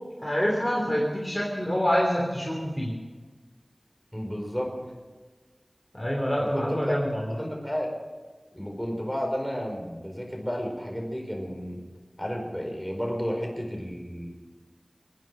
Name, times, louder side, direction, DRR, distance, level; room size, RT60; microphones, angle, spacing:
voice 1, 0.2-2.9 5.9-7.4, equal, 15° left, -3 dB, 3.2 m, -26 dB
voice 2, 4.1-4.7 6.4-6.9 7.4-7.9 8.5-11.8 12.2-14.3, equal, 5° right, 1 dB, 4.6 m, -32 dB
23.5 x 9.4 x 6.2 m, 1.4 s
wide cardioid pair, 45°, 0 cm